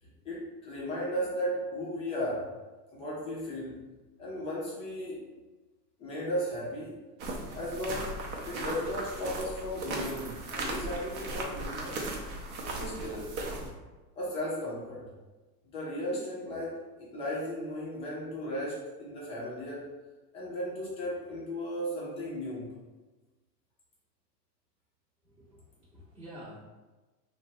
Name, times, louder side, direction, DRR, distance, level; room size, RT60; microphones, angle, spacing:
voice 1, 0.0-2.5 2.9-3.8 4.2-5.3 6.0-7.0 7.5-12.0 12.7-13.3 14.1-15.1 15.7-19.9 20.3-22.7, equal, 15° left, -7 dB, 0.4 m, -35 dB
sound 1, 7.2-13.7, right 2 dB, 55° right, 0.7 m, -37 dB
voice 2, 25.2-26.6, equal, 15° right, -11 dB, 0.7 m, -49 dB
2.8 x 2.2 x 2.7 m, 1.2 s
hypercardioid pair, 125°, 49 cm